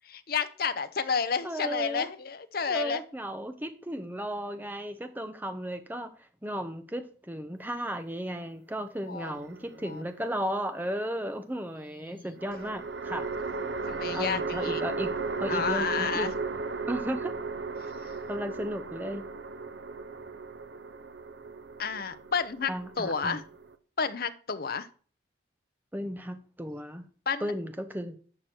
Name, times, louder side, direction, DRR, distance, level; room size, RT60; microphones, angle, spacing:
voice 1, 0.1-3.0 9.1-9.4 9.9-10.0 12.1-12.3 13.9-14.8 15.5-16.3 21.8-22.7 23.0-23.4 24.0-24.9 27.3-27.5, left 5 dB, 50° left, 11 dB, 0.7 m, -31 dB
voice 2, 1.4-2.1 2.7-6.1 6.4-13.3 14.1-15.1 15.4-16.3 16.9-17.3 18.3-19.3 22.7-23.4 25.9-27.0 27.4-28.2, equal, 10° right, 7 dB, 0.9 m, -34 dB
sound 1, 9.3-10.1 12.4-23.8, right 4 dB, 65° right, 0.7 m, -36 dB
11.5 x 6.0 x 4.4 m, 0.43 s
head